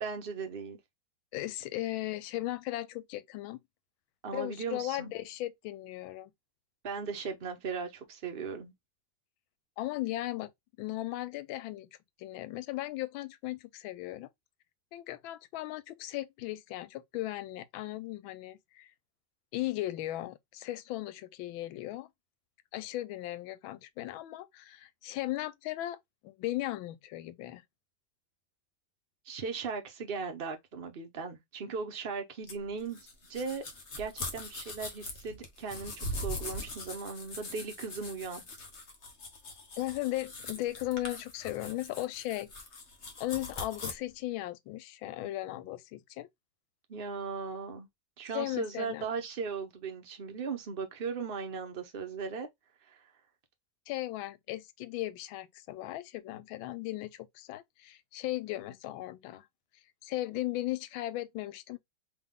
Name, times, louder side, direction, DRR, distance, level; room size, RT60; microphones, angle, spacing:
voice 1, 0.0-0.8 4.2-5.1 6.8-8.7 29.3-33.6 34.0-38.4 46.9-47.9 48.2-52.5 52.8-53.0, right 5 dB, 65° right, 0.5 m, -38 dB
voice 2, 1.3-3.6 4.3-6.3 9.8-10.5 10.8-11.9 12.2-14.3 14.9-18.9 19.5-22.1 22.7-26.0 26.2-27.6 39.8-42.5 43.2-46.3 48.3-49.1 53.9-59.5 60.0-61.8, left 16 dB, 80° left, 1.4 m, -37 dB
sound 1, 32.5-43.9, left 2 dB, 40° left, 1.2 m, -41 dB
3.7 x 3.3 x 3.5 m
omnidirectional pair, 2.2 m